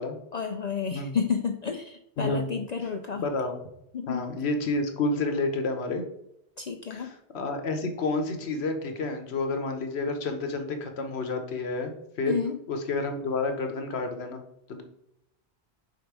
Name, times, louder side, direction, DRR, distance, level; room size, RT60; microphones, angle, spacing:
voice 1, 0.3-3.3 3.9-4.3 6.6-7.1 12.3-12.6, left 6 dB, 55° left, 5 dB, 0.5 m, -30 dB
voice 2, 2.2-2.5 3.2-3.6 4.1-6.0 6.9-11.9 12.2-12.3 12.7-14.4 14.7-14.8, left 3 dB, 75° left, 6 dB, 1.2 m, -30 dB
5.3 x 3.7 x 4.7 m, 0.79 s
omnidirectional pair, 1.1 m